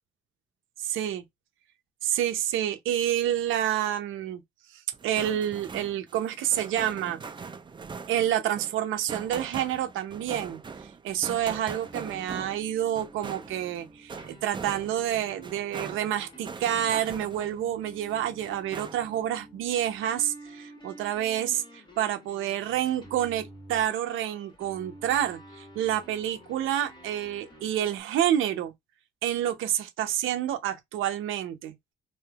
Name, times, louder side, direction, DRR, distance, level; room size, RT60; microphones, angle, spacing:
voice 1, 0.8-1.2 2.0-4.4 4.7-7.2 8.1-10.6 11.0-28.7 29.2-31.7, right 11 dB, 85° right, 0.7 m, -28 dB
sound 1, 4.9-17.7 18.1-19.3, right 5 dB, 25° right, 0.4 m, -42 dB
sound 2, 11.1-28.0, equal, 25° left, 1.3 m, -50 dB
3.4 x 2.7 x 2.3 m
cardioid pair, 90°, 20 cm